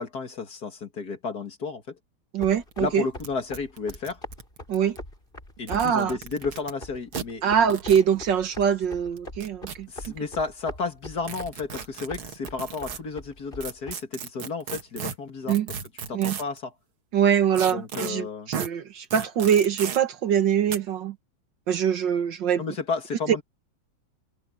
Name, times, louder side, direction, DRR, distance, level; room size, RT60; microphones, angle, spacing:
voice 1, 0.0-2.0 2.8-4.2 5.6-7.4 9.9-16.7 17.7-18.5 22.6-23.4, left 4 dB, 50° left, 2.4 m, -32 dB
voice 2, 2.3-3.0 4.7-5.0 5.7-6.1 7.4-9.9 15.5-15.7 16.1-16.4 17.1-18.3 18.6-21.1 21.7-22.6, right 8 dB, 65° right, 1.8 m, -23 dB
sound 1, 2.4-13.9, left 1 dB, 25° left, 5.6 m, -42 dB
sound 2, 2.4-2.5 2.7-2.8 3.2-3.3 3.5-5.0 5.6-6.7 7.1-7.2 7.7-8.1 9.2-10.1 11.3-13.0 13.6-16.6 17.6-18.1 18.5-18.7 19.1-20.0 20.7-20.8, right 7 dB, 85° right, 2.5 m, -35 dB
omnidirectional pair, 2.2 m